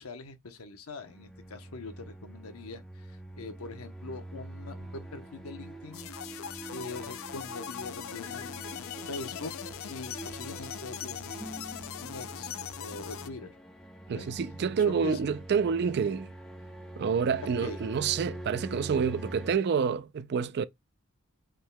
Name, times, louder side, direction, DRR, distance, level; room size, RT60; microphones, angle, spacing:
voice 1, 0.0-6.1 6.7-9.5 9.9-11.5 12.0-12.5 12.8-13.5 14.1-14.3 14.8-15.2 17.6-17.8, left 3 dB, 85° left, 0.8 m, -43 dB
sound 1, 1.0-19.6, right 1 dB, 5° left, 0.8 m, -44 dB
sound 2, 5.9-13.3, left 9 dB, 65° left, 0.4 m, -40 dB
voice 2, 14.1-16.3 17.0-20.6, right 6 dB, 50° right, 0.4 m, -28 dB
5.5 x 3.7 x 2.2 m
head